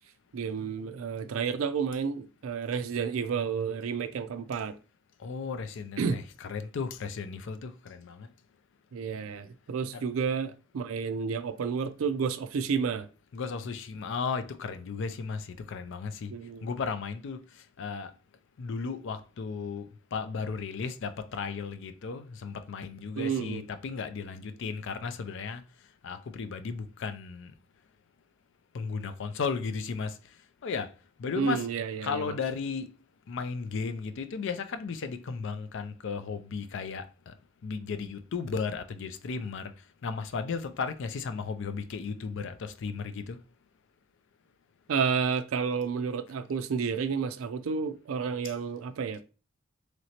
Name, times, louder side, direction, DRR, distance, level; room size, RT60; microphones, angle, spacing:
voice 1, 0.3-4.7 6.0-6.2 8.9-13.1 16.3-16.7 23.2-23.6 31.3-32.3 44.9-49.2, right 6 dB, 85° right, 0.4 m, -31 dB
voice 2, 5.2-8.3 9.9-10.0 13.3-16.3 16.6-17.4 17.8-18.1 18.6-25.6 26.0-27.5 28.7-30.2 30.6-30.9 31.2-31.6 32.0-32.9 33.3-37.3 37.6-39.7 40.0-43.4, left 5 dB, 65° left, 0.4 m, -35 dB
3.1 x 2.9 x 2.8 m
head